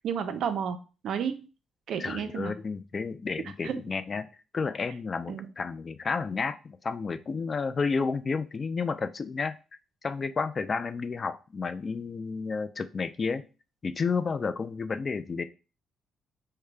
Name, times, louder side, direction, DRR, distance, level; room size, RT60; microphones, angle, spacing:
voice 1, 0.0-0.8 1.0-1.4 1.9-2.5 3.6-3.8 5.3-5.5, right 7 dB, 70° right, 9 dB, 0.5 m, -31 dB
voice 2, 2.0-4.3 4.5-9.5 10.0-13.4 13.8-15.4, left 4 dB, 40° left, 11 dB, 0.4 m, -31 dB
4.9 x 2.2 x 3.3 m, 0.33 s
cardioid pair, 90°, 0 cm